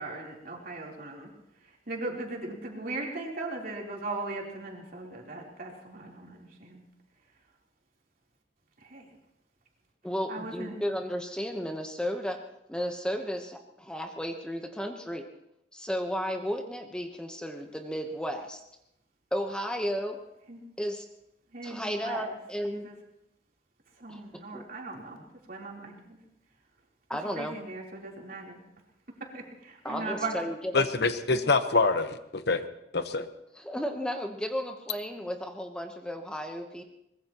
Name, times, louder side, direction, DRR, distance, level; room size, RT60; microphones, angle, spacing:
voice 1, 0.0-6.8 8.8-9.1 10.3-10.8 20.5-20.6 21.5-22.4 22.6-23.0 23.9-26.2 27.4-28.6 29.3-30.4 31.3-31.4, right 3 dB, 55° right, -1 dB, 3.5 m, -38 dB
voice 2, 10.0-12.4 12.7-15.2 15.7-18.6 19.3-20.2 20.8-21.0 21.6-22.9 24.1-24.2 24.5-24.6 27.1-27.5 29.8-30.8 33.6-36.8, equal, 5° left, 4 dB, 1.0 m, -33 dB
Piano, 29.8-31.8, left 3 dB, 30° left, 1.8 m, -49 dB
voice 3, 30.7-32.6 32.9-33.3, left 3 dB, 65° left, 10 dB, 1.0 m, -25 dB
23.0 x 20.5 x 3.0 m, 0.82 s
head